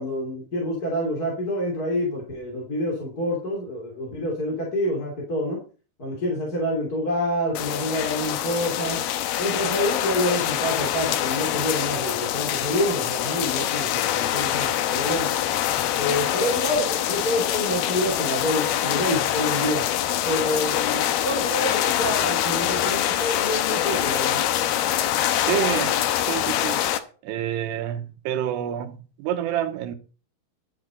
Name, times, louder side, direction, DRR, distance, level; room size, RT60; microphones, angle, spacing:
voice 1, 0.0-5.6 6.0-9.0 9.4-15.3 16.0-19.9 20.2-24.4, left 1 dB, 25° left, 2.9 m, -27 dB
sound 1, 7.5-27.0, left 11 dB, 80° left, 2.8 m, -25 dB
voice 2, 25.5-26.0 26.3-26.8 27.2-30.0, right 11 dB, 85° right, 3.1 m, -28 dB
11.0 x 8.7 x 5.1 m
omnidirectional pair, 4.7 m